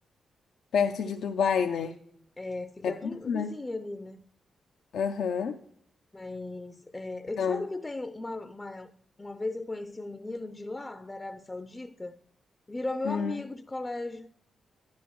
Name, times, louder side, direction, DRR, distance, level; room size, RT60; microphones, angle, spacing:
voice 1, 0.7-1.9 2.8-2.9 3.3-3.5 4.9-5.5 7.4-7.6 13.1-13.3, left 6 dB, 80° left, 0.5 m, -28 dB
voice 2, 2.4-4.2 6.1-8.9 9.2-12.2 12.7-14.3, left 2 dB, 25° left, 0.5 m, -37 dB
11.0 x 10.0 x 3.0 m
supercardioid pair, 50°, 0 cm